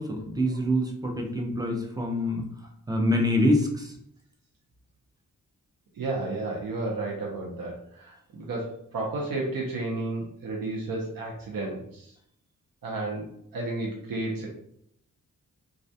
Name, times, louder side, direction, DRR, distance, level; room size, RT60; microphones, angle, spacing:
voice 1, 0.0-2.4 2.9-3.9, left 1 dB, 10° right, 1 dB, 0.4 m, -25 dB
voice 2, 5.9-12.1 12.8-13.3 13.5-14.5, right 2 dB, 75° right, -2 dB, 0.6 m, -32 dB
2.3 x 2.1 x 2.6 m, 0.71 s
wide cardioid pair, 130°, 34 cm